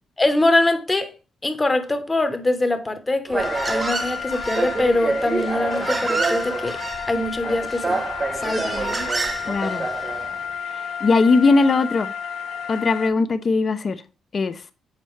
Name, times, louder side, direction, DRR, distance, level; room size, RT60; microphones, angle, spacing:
voice 1, 0.2-1.1 1.4-6.8 7.1-8.0 8.3-9.1, left 2 dB, 20° left, 1.0 m, -23 dB
sound 1, 3.3-13.1, left 7 dB, 80° left, 1.3 m, -32 dB
Human voice, 3.3-10.4, right 3 dB, 30° right, 0.4 m, -27 dB
voice 2, 9.5-9.8 11.0-12.1 12.7-14.0 14.3-14.6, left 3 dB, 40° left, 0.6 m, -19 dB
7.4 x 4.1 x 3.2 m
cardioid pair, 90°, 0 cm